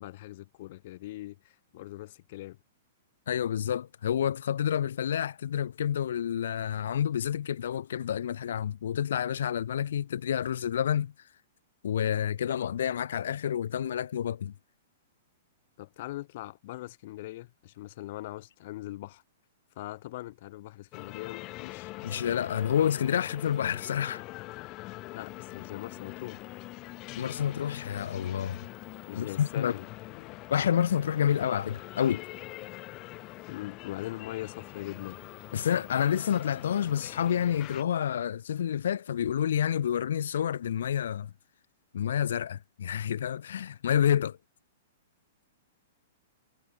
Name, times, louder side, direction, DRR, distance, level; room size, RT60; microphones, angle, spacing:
voice 1, 0.0-2.6 15.8-19.2 19.8-22.5 25.1-26.4 29.1-30.4 33.5-35.2, left 17 dB, 40° left, 4.4 m, -41 dB
voice 2, 3.3-11.1 11.8-14.5 22.0-24.2 27.2-28.6 29.1-29.7 30.5-32.2 35.5-41.3 41.9-44.4, left 9 dB, 70° left, 3.7 m, -29 dB
sound 1, 20.9-37.8, left 21 dB, 25° left, 2.4 m, -44 dB
hypercardioid pair, 170°, 0 cm